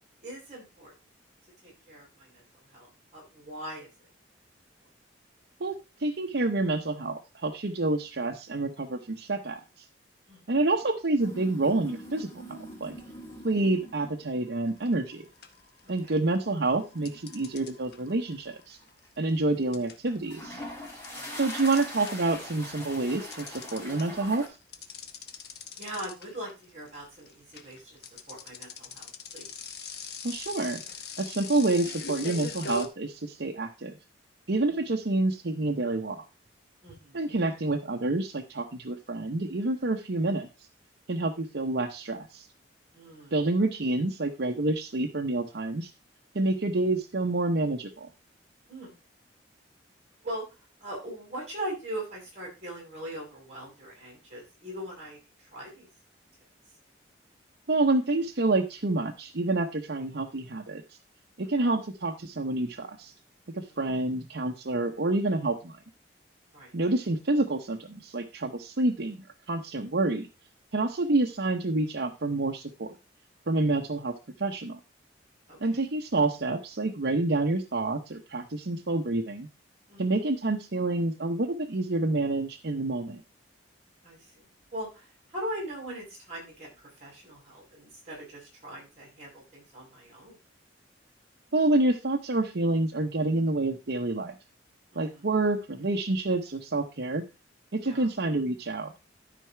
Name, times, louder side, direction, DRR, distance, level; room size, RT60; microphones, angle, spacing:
voice 1, 0.2-0.9 1.6-2.4 2.7-3.9 10.3-10.4 15.8-16.2 21.1-21.4 25.7-28.0 28.3-29.5 34.6-34.8 36.8-37.3 42.9-43.3 48.7-48.9 50.2-50.4 50.8-55.2 55.5-55.9 61.4-61.5 66.5-66.7 75.5-75.8 79.9-80.0 84.0-84.2 84.7-86.7 87.0-90.4 94.9-95.3 97.8-98.1, right 1 dB, 35° right, -2 dB, 6.4 m, -40 dB
voice 2, 5.6-9.6 10.5-12.9 13.4-15.3 15.9-18.8 19.2-20.6 21.4-24.5 30.2-30.8 31.2-33.9 34.5-36.2 37.1-40.5 41.1-42.5 43.3-45.9 46.3-48.1 57.7-60.8 61.4-63.1 63.5-65.8 66.7-70.3 70.7-72.9 73.5-74.1 74.4-74.8 75.6-79.5 80.0-83.2 91.5-94.3 94.9-97.2 97.7-98.9, right 2 dB, 65° right, 2 dB, 0.8 m, -28 dB
sound 1, 11.2-14.3 14.8-15.1 16.6-18.3 18.7-19.1 20.1-24.5, equal, 15° left, 3.3 m, -42 dB
sound 2, 14.8-15.1 15.4-16.4 17.1-22.4 22.7-32.9, left 3 dB, 60° left, 1.1 m, -41 dB
12.5 x 4.8 x 4.5 m, 0.27 s
head